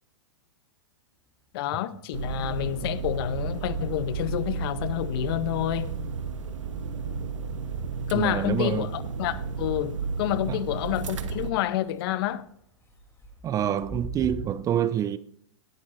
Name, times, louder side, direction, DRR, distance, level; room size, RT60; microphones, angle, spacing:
sound 1, 1.2-2.4 2.7-14.4, equal, 15° left, 2.6 m, -48 dB
voice 1, 1.5-6.0 8.1-12.4, left 13 dB, 50° left, 0.7 m, -29 dB
sound 2, 2.1-11.5, right 5 dB, 85° right, 1.1 m, -32 dB
voice 2, 8.1-8.9 10.5-10.6 13.4-15.2, right 10 dB, 20° right, 0.4 m, -26 dB
17.5 x 10.5 x 2.6 m
hypercardioid pair, 120°, 16 cm